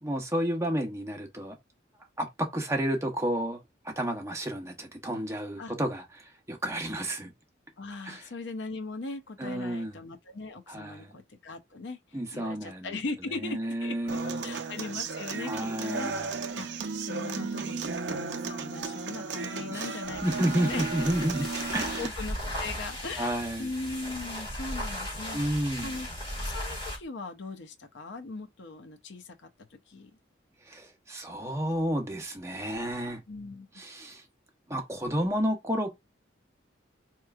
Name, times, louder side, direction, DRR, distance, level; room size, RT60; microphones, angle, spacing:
voice 1, 0.0-1.6 2.2-3.6 3.8-7.3 8.0-8.2 9.4-10.0 10.7-11.1 12.1-13.0 13.3-14.6 15.4-16.3 19.7-21.5 21.7-22.1 23.2-23.7 25.3-25.9 30.7-33.2 33.8-34.2 34.7-36.0, right 1 dB, 15° right, 0.8 m, -31 dB
voice 2, 7.8-12.0 12.3-16.1 16.5-16.7 17.0-21.0 21.5-25.4 25.8-26.1 26.4-30.1 33.3-33.7, left 3 dB, 65° left, 0.6 m, -39 dB
Human voice / Acoustic guitar, 14.1-22.1, right 4 dB, 60° right, 0.6 m, -35 dB
sound 1, 20.0-27.1, left 1 dB, 25° left, 1.8 m, -37 dB
4.5 x 3.0 x 2.4 m
head